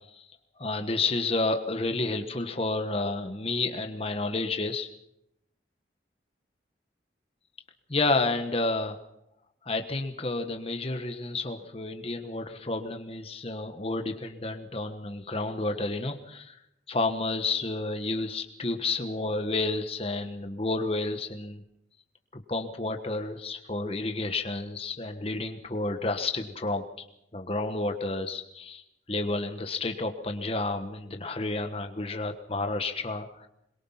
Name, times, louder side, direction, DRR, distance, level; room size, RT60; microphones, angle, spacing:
voice 1, 0.6-4.9 7.9-9.0 9.7-16.6 16.9-21.6 22.5-26.8 27.3-28.8 29.1-33.5, left 3 dB, 35° left, 6 dB, 1.3 m, -30 dB
22.5 x 22.5 x 5.7 m, 0.80 s
head